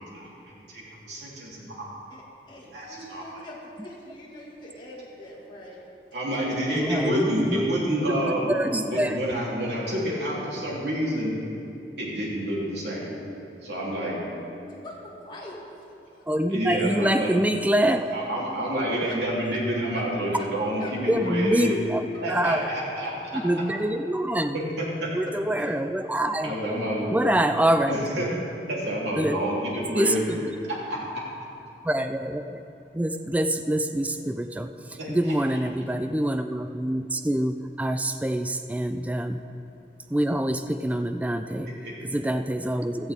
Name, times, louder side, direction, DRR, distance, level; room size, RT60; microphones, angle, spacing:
voice 1, 0.0-1.9 2.7-3.4 6.1-8.5 8.8-11.4 12.0-13.2 13.6-14.2 16.5-17.3 18.1-21.8 22.2-23.4 24.5-25.1 26.4-27.3 27.9-28.4 28.7-30.4 30.7-31.0 35.0-35.6 41.6-41.9, equal, 75° right, -5 dB, 3.4 m, -28 dB
voice 2, 2.5-5.8 14.6-15.6 19.1-19.2 20.4-20.5 20.8-20.9 22.1-22.2, left 1 dB, 25° left, -5 dB, 2.2 m, -43 dB
voice 3, 6.7-7.6 7.9-9.2 16.3-18.2 21.1-22.7 23.3-24.6 25.1-26.5 27.1-28.0 29.2-29.4 29.8-30.5 31.8-32.6 32.9-39.4 40.1-41.7 42.0-43.1, right 1 dB, 10° right, 8 dB, 0.4 m, -26 dB
16.0 x 13.5 x 3.7 m, 2.7 s
head